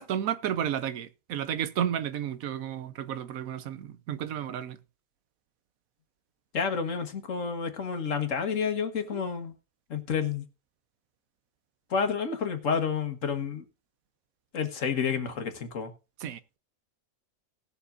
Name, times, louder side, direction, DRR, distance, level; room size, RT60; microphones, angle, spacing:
voice 1, 0.0-4.8 9.1-9.2 16.2-16.6, right 9 dB, 80° right, 1.2 m, -32 dB
voice 2, 6.5-9.5 9.9-10.4 11.9-13.6 14.5-15.9, left 6 dB, 65° left, 1.6 m, -30 dB
18.5 x 7.1 x 2.5 m
omnidirectional pair, 1.5 m